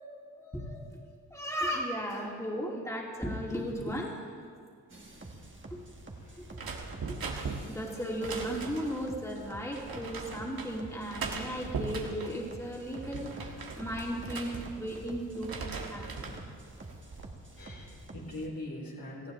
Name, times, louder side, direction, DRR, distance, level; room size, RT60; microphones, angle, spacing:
voice 1, 0.3-1.0 1.3-4.1 5.7-5.8 6.4-6.6 7.1-7.2 7.7-16.3, equal, 10° left, -3 dB, 2.9 m, -36 dB
voice 2, 4.9-5.2 6.1-6.3 17.6-19.3, left 1 dB, 65° left, -3 dB, 3.9 m, -42 dB
sound 1, 4.9-18.5, right 2 dB, 30° right, 1.9 m, -48 dB
sound 2, 6.5-9.0 9.8-10.7 11.1-12.4 12.8-15.0 15.3-16.4 16.9-17.3, right 4 dB, 70° right, 1.6 m, -39 dB
19.0 x 14.5 x 3.4 m, 2.2 s
cardioid pair, 45°, 37 cm